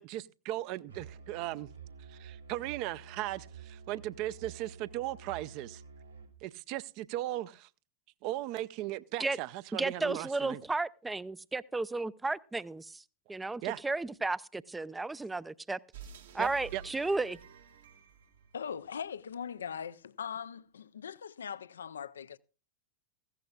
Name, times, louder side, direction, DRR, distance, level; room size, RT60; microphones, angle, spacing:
voice 1, 0.0-1.7 2.1-5.8 6.4-7.7 8.2-10.6 13.6-13.8 16.4-16.8, right 15 dB, 45° right, 0.7 m, -37 dB
Musical instrument, 0.9-6.4, right 6 dB, 75° right, 3.2 m, -50 dB
voice 2, 9.8-13.0 13.3-15.8 16.3-17.4, right 3 dB, 10° right, 0.5 m, -33 dB
sound 1, 15.9-19.4, right 7 dB, 60° right, 1.7 m, -51 dB
voice 3, 18.5-22.4, left 7 dB, 70° left, 0.5 m, -40 dB
18.0 x 16.0 x 2.4 m
figure-of-eight pair, 90°, 0 cm